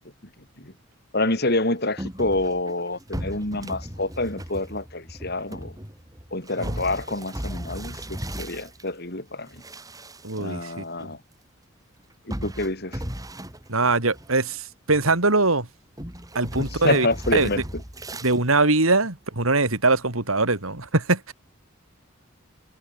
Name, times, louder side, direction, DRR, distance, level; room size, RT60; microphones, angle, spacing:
voice 1, 1.1-5.7 6.3-9.6 10.4-11.2 12.3-13.0 16.6-17.8, left 2 dB, 50° left, 5.2 m, -27 dB
sound 1, 2.0-8.9 9.4-10.7 11.0-11.1 12.3-14.6 14.9-15.4 16.0-18.4, equal, 15° right, 5.7 m, -36 dB
voice 2, 10.2-11.1 13.7-15.7 16.4-17.1 17.3-17.5 18.2-21.3, right 3 dB, 85° right, 3.5 m, -22 dB
head